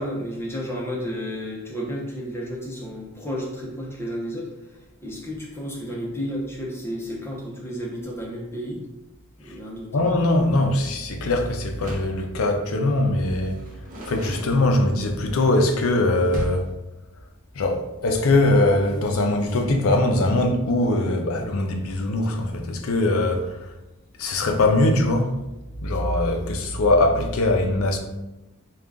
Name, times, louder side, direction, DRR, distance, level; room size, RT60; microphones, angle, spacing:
voice 1, 0.0-8.9 9.4-10.0, equal, 10° left, 0.7 m, -32 dB
voice 2, 9.9-13.6 14.1-16.7 17.5-23.7 24.2-25.3 25.8-28.0, left 2 dB, 75° left, 0.5 m, -21 dB
Door, 11.7-12.3 13.4-15.1 16.3-16.8, right 1 dB, 35° right, 0.7 m, -35 dB
3.7 x 2.4 x 3.4 m
head